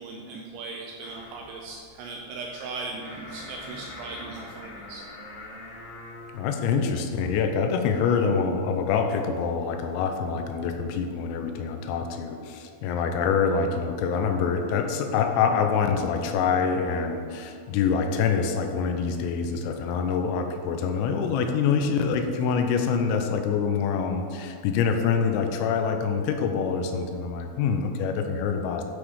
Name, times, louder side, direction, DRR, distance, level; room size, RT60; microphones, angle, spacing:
voice 1, 0.0-5.0, right 3 dB, 85° right, 0 dB, 2.7 m, -38 dB
sound 1, 1.0-6.3, left 2 dB, 65° left, 4.4 m, -43 dB
voice 2, 6.3-28.8, left 6 dB, 85° left, 5 dB, 3.4 m, -25 dB
12.0 x 5.1 x 4.8 m, 2.3 s
omnidirectional pair, 6.0 m